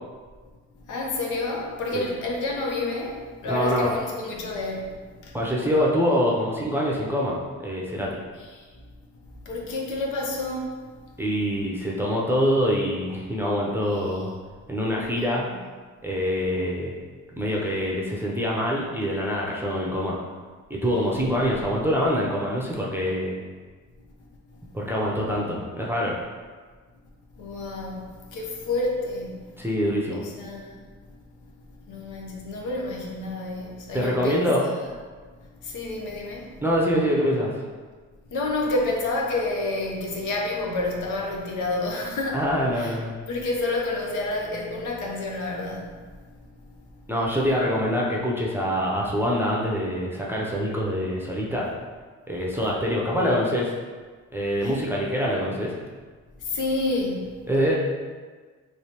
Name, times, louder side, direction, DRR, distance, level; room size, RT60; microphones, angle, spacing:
voice 1, 0.9-4.9 5.2-5.4 8.4-8.6 9.5-10.7 13.9-14.2 15.2-15.6 27.4-28.0 28.3-29.4 30.1-30.8 31.9-34.5 35.6-36.5 38.3-42.4 42.7-43.0 43.3-45.9 54.6-54.7 56.5-57.3, left 2 dB, 90° left, -1 dB, 0.7 m, -29 dB
voice 2, 3.5-3.9 5.3-8.2 11.2-14.3 14.7-15.4 16.0-16.9 17.3-20.2 20.7-23.4 24.7-26.2 29.6-30.2 33.9-34.6 36.6-37.5 42.3-43.1 47.1-51.7 52.3-53.7 54.3-55.7 57.5-57.8, equal, 5° right, -4 dB, 0.5 m, -25 dB
3.2 x 3.0 x 2.9 m, 1.5 s
cardioid pair, 90°, 30 cm